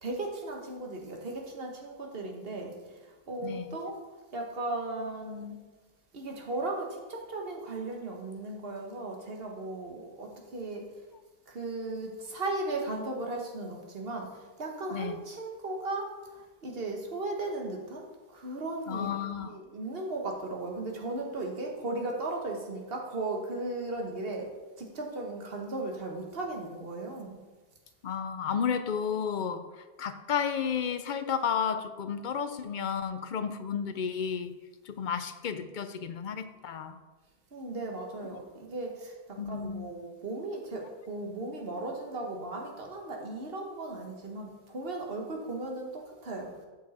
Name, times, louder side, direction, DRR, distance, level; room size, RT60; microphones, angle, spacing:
voice 1, 0.0-4.0 4.3-5.5 6.1-10.8 11.5-24.5 24.8-27.4 37.5-46.5, right 2 dB, 70° right, 1 dB, 1.5 m, -36 dB
voice 2, 3.4-3.8 14.9-15.2 18.9-19.5 28.0-34.5 34.8-37.0 39.4-39.9, left 7 dB, 55° left, 10 dB, 0.6 m, -32 dB
8.3 x 6.4 x 4.2 m, 1.2 s
omnidirectional pair, 1.0 m